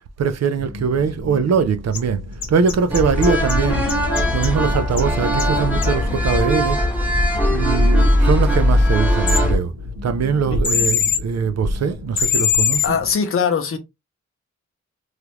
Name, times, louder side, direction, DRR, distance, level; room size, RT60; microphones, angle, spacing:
voice 1, 0.2-3.9 4.3-6.8 7.5-9.7 10.0-13.0, right 5 dB, 60° right, 0.5 m, -21 dB
sound 1, 0.6-13.1, left 1 dB, 80° right, 1.3 m, -35 dB
sound 2, 1.9-2.0 2.4-3.5 3.9-4.5 5.0-5.1 5.4-5.5 5.8-5.9 9.3-9.4 10.6-11.2 12.2-12.9, left 7 dB, 80° left, 1.1 m, -20 dB
sound 3, 2.9-9.6, left 1 dB, 5° right, 1.1 m, -19 dB
voice 2, 12.8-13.8, left 6 dB, 50° left, 0.7 m, -21 dB
3.2 x 2.4 x 2.9 m
wide cardioid pair, 90°, 29 cm